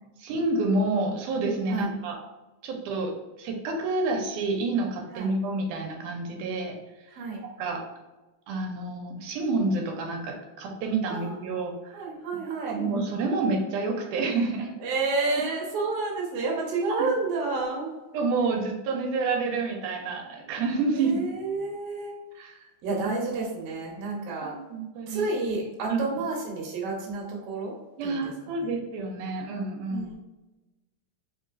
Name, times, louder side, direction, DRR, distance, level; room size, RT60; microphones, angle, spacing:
voice 1, 0.2-2.2 2.6-6.8 7.6-7.8 8.5-12.0 12.7-14.7 16.9-17.1 18.1-21.2 22.4-23.0 24.4-25.3 25.9-26.0 28.0-30.1, right 3 dB, 85° right, 2 dB, 2.1 m, -29 dB
voice 2, 7.1-7.4 11.1-11.7 11.9-12.8 14.8-17.9 20.9-22.1 22.8-24.5 25.1-27.7 28.0-28.3 29.9-30.1, right 3 dB, 65° right, -3 dB, 1.7 m, -30 dB
4.8 x 3.8 x 2.5 m, 1.1 s
omnidirectional pair, 3.6 m